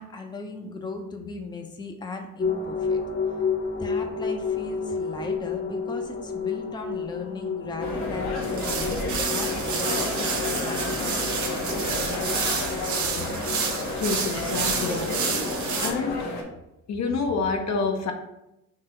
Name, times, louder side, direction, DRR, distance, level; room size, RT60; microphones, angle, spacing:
voice 1, 0.0-3.0 3.4-3.5 3.8-11.7, left 3 dB, 15° left, 4 dB, 0.6 m, -38 dB
sound 1, 2.4-16.2, left 5 dB, 45° left, 1.0 m, -32 dB
sound 2, 7.8-16.4, left 2 dB, 80° left, 1.1 m, -30 dB
sound 3, 8.4-15.9, right 5 dB, 70° right, 0.9 m, -30 dB
voice 2, 13.9-15.1 15.8-16.2 16.9-18.1, left 4 dB, 60° left, 4 dB, 0.7 m, -27 dB
3.7 x 2.9 x 4.3 m, 0.88 s
cardioid pair, 90°, 30 cm